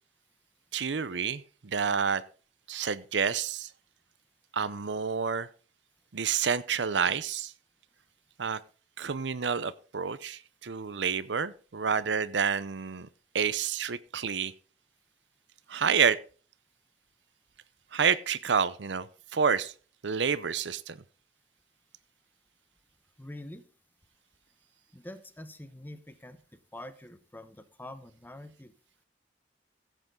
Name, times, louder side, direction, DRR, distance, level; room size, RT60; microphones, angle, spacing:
voice 1, 0.7-2.2 2.7-3.7 4.5-5.5 6.1-7.5 8.4-8.6 9.0-13.1 13.3-14.5 15.7-16.2 17.9-19.1 19.3-19.7 20.0-21.0, right 6 dB, 85° right, 0.7 m, -29 dB
voice 2, 23.2-23.6 24.9-28.7, left 1 dB, 10° left, 0.9 m, -45 dB
15.5 x 7.9 x 3.8 m
head